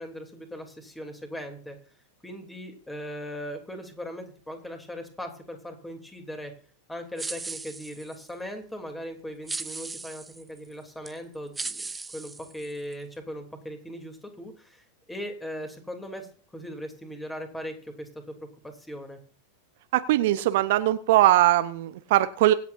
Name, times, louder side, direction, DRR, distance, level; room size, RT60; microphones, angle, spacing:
voice 1, 0.0-1.8 2.2-6.5 6.9-19.2, equal, 5° left, 5 dB, 3.1 m, -39 dB
sound 1, 7.2-8.3 9.5-10.4 11.1-11.2 11.6-12.9, right 3 dB, 10° right, 0.7 m, -37 dB
voice 2, 19.9-22.5, right 14 dB, 50° right, 11 dB, 0.9 m, -21 dB
24.5 x 8.6 x 2.7 m, 0.44 s
figure-of-eight pair, 90°, 0 cm